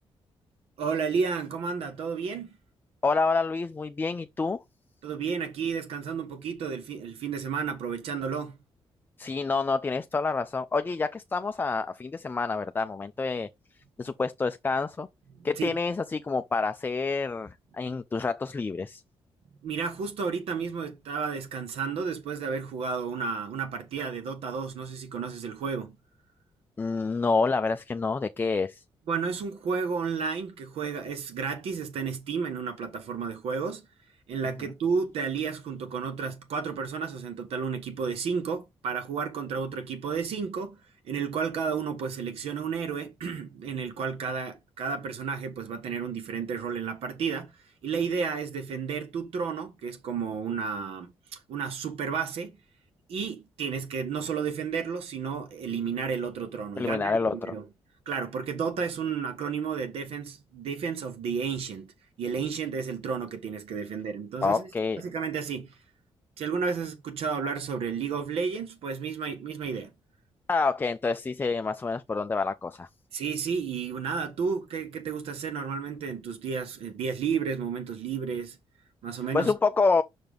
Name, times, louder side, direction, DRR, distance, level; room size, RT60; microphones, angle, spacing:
voice 1, 0.8-2.5 5.0-8.6 15.4-15.7 19.6-26.0 29.1-33.8 34.3-40.8 41.0-47.5 47.8-52.5 53.1-57.6 58.0-61.9 62.2-64.7 65.0-65.7 66.4-69.9 73.1-78.6 79.0-79.5, right 6 dB, 85° right, 1.4 m, -32 dB
voice 2, 3.0-4.6 9.2-13.5 14.0-15.1 15.4-19.0 26.8-28.8 56.8-57.5 64.4-65.0 70.5-72.9 79.3-80.0, left 4 dB, 20° left, 0.4 m, -27 dB
5.8 x 5.2 x 3.8 m
cardioid pair, 120°, 10 cm